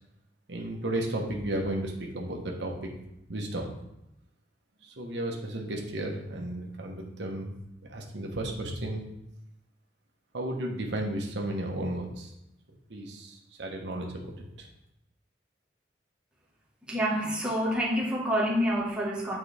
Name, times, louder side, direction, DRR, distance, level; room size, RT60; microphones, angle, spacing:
voice 1, 0.5-2.9 3.3-3.7 4.8-7.5 7.9-9.0 10.3-12.3 12.9-14.7, right 1 dB, 80° right, 1 dB, 1.1 m, -33 dB
voice 2, 16.9-19.4, equal, 5° right, -6 dB, 1.4 m, -27 dB
8.7 x 4.1 x 3.4 m, 0.87 s
head